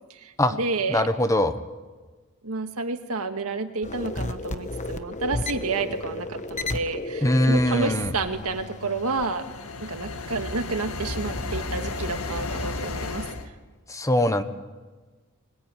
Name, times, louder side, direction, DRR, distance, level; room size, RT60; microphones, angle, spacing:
voice 1, 0.1-1.0 2.4-9.5 9.8-13.3, right 3 dB, 75° right, 6 dB, 1.9 m, -30 dB
voice 2, 0.9-1.6 7.2-8.1 13.9-14.4, left 1 dB, 15° left, 9 dB, 1.1 m, -22 dB
sound 1, 3.8-9.2, left 2 dB, 35° left, 1.2 m, -33 dB
sound 2, 8.8-13.5, left 3 dB, 65° left, 1.8 m, -33 dB
22.0 x 21.5 x 9.2 m, 1.3 s
head